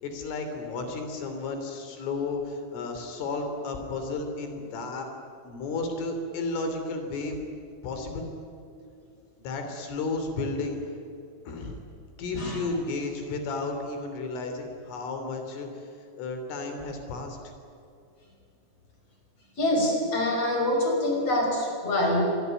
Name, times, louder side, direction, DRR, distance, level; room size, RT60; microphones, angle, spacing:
voice 1, 0.0-5.1 5.4-7.4 7.8-8.3 9.4-10.8 11.5-11.8 12.2-15.7 16.2-17.4, left 3 dB, 70° left, 5 dB, 5.6 m, -33 dB
voice 2, 19.6-22.2, left 1 dB, 30° left, 1 dB, 6.4 m, -25 dB
26.5 x 23.0 x 9.3 m, 2.5 s
omnidirectional pair, 5.9 m